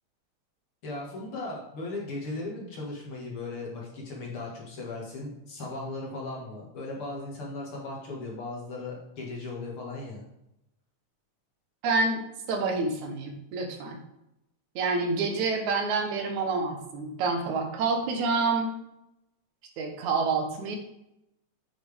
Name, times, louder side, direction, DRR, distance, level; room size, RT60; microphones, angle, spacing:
voice 1, 0.8-10.2, left 2 dB, 50° left, -3 dB, 2.5 m, -37 dB
voice 2, 11.8-12.2 12.5-14.0 14.8-18.7 19.8-20.8, right 3 dB, 80° right, 3 dB, 2.5 m, -28 dB
8.6 x 6.0 x 3.5 m, 0.86 s
omnidirectional pair, 3.4 m